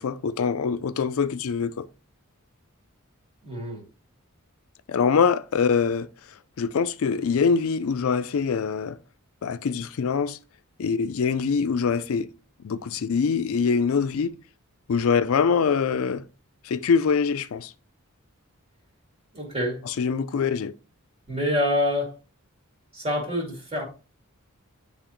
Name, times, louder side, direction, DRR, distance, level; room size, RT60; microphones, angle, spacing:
voice 1, 0.0-1.9 4.9-6.1 6.6-9.0 9.4-10.4 10.8-12.3 12.6-14.4 14.9-16.2 16.6-17.7 19.9-20.7, left 5 dB, 70° left, 0.4 m, -24 dB
voice 2, 3.4-3.8 19.3-19.8 21.3-22.1 22.9-23.8, left 1 dB, 30° right, 2.2 m, -26 dB
9.9 x 3.5 x 3.0 m
head